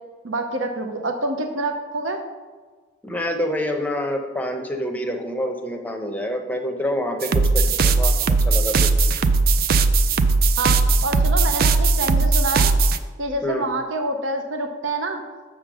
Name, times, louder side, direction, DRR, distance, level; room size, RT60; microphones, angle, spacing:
voice 1, 0.2-2.2 10.6-12.7 13.2-15.2, right 2 dB, 75° right, 5 dB, 0.7 m, -27 dB
voice 2, 3.0-8.1 8.4-8.9 13.4-13.7, left 1 dB, 10° left, 3 dB, 0.6 m, -27 dB
sound 1, 7.2-13.0, right 3 dB, 50° right, 0.3 m, -18 dB
7.2 x 3.8 x 6.1 m, 1.4 s
head